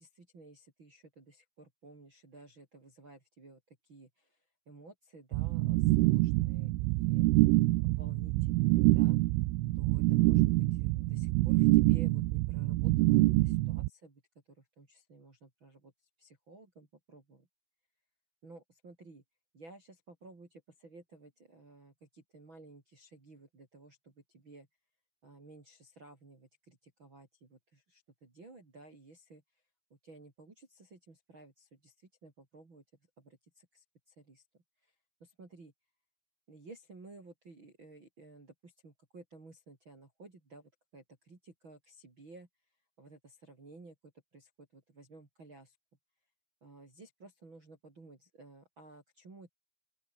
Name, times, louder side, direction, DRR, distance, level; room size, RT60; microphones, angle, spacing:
voice 1, 0.0-7.3 7.9-9.2 9.7-14.2 14.5-15.9 16.2-17.5 18.4-19.2 19.5-24.7 25.2-29.4 29.9-32.8 33.2-34.4 34.8-34.9 35.2-35.7 36.5-42.5 43.0-45.8 46.6-49.5, right 3 dB, 25° right, 4.4 m, -55 dB
sound 1, 5.3-13.9, right 20 dB, 85° right, 3.3 m, -26 dB
open air
omnidirectional pair, 5.9 m